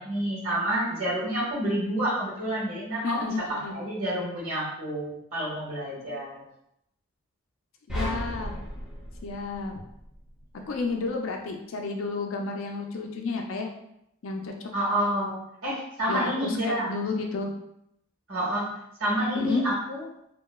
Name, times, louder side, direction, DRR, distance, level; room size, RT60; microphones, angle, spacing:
voice 1, 0.0-3.3 3.7-6.4 14.7-16.9 18.3-18.7 19.0-20.0, right 1 dB, 75° right, -6 dB, 1.2 m, -29 dB
voice 2, 3.0-3.7 7.9-8.5 9.2-9.7 10.7-13.7 14.2-14.5 16.1-17.5 19.3-19.7, left 3 dB, 70° left, 3 dB, 0.4 m, -31 dB
sound 1, 7.9-10.3, equal, 5° right, 0.5 m, -35 dB
2.8 x 2.0 x 2.2 m, 0.77 s
head